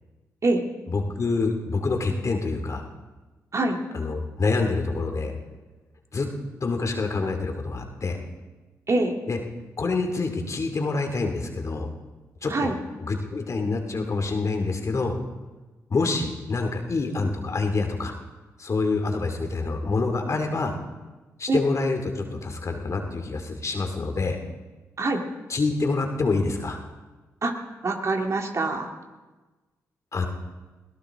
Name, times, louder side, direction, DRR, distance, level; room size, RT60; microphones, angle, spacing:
voice 1, 0.9-2.8 3.9-5.3 6.1-6.3 6.6-8.2 9.3-9.4 9.8-11.9 12.4-12.7 13.0-15.2 15.9-18.1 18.6-20.8 21.4-24.4 25.5-26.8 30.1-30.3, left 3 dB, 50° left, 4 dB, 2.4 m, -26 dB
voice 2, 27.8-28.9, right 2 dB, 50° right, 3 dB, 2.2 m, -24 dB
21.5 x 17.0 x 3.7 m, 1.2 s
supercardioid pair, 45°, 7 cm